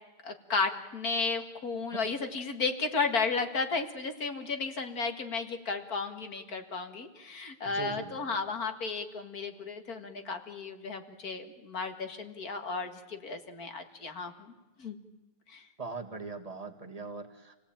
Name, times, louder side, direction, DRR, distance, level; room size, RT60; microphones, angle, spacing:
voice 1, 0.2-14.5 14.8-15.0 15.5-15.7, left 4 dB, 45° left, 7 dB, 2.2 m, -34 dB
voice 2, 7.7-8.2 15.8-17.6, right 4 dB, 20° right, 3 dB, 1.9 m, -40 dB
28.0 x 17.5 x 8.9 m, 1.1 s
omnidirectional pair, 2.3 m